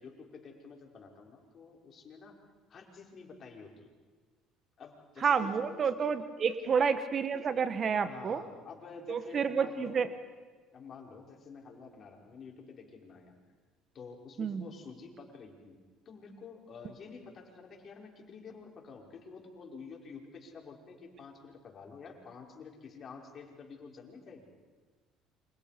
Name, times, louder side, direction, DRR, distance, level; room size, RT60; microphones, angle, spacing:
voice 1, 0.0-2.4 2.7-3.9 4.8-5.8 6.5-6.7 7.3-7.5 8.0-10.1 10.7-13.3 13.9-15.8 16.1-24.5, left 5 dB, 45° left, 0 dB, 5.6 m, -49 dB
voice 2, 5.2-8.4 9.1-10.1 14.4-14.6, right 6 dB, 45° right, 12 dB, 1.3 m, -29 dB
29.5 x 26.0 x 5.3 m, 1.4 s
supercardioid pair, 75°, 0 cm